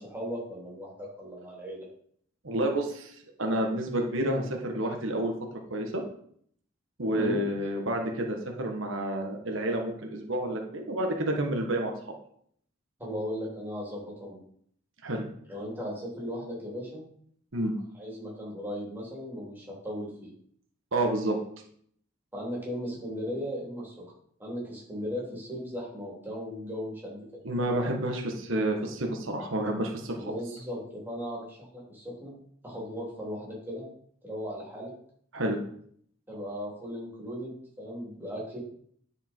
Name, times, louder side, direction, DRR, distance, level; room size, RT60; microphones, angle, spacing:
voice 1, 0.0-1.9 7.1-7.4 13.0-14.4 15.5-17.0 17.9-20.3 22.3-23.9 24.4-27.4 30.1-32.3 32.6-33.8 34.2-34.9 36.3-38.6, equal, 10° right, -5 dB, 3.3 m, -37 dB
voice 2, 2.4-5.3 5.7-6.0 7.0-12.1 15.0-15.3 17.5-17.7 20.9-21.4 27.4-30.3 35.3-35.6, right 1 dB, 80° right, 2 dB, 1.4 m, -29 dB
9.9 x 5.3 x 4.5 m, 0.64 s
head